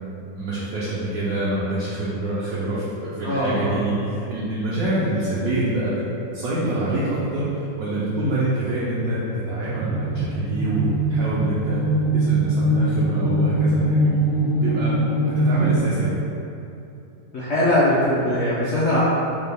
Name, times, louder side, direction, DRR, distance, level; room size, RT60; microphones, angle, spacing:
voice 1, 0.1-6.0 6.3-11.8 12.1-14.1 14.6-16.1, right 2 dB, 65° right, -9 dB, 0.9 m, -26 dB
voice 2, 3.2-3.8 17.3-19.0, left 1 dB, 70° left, -10 dB, 0.6 m, -21 dB
sound 1, 9.6-15.8, right 1 dB, 15° right, 0.3 m, -22 dB
5.2 x 2.3 x 3.3 m, 2.7 s
omnidirectional pair, 2.0 m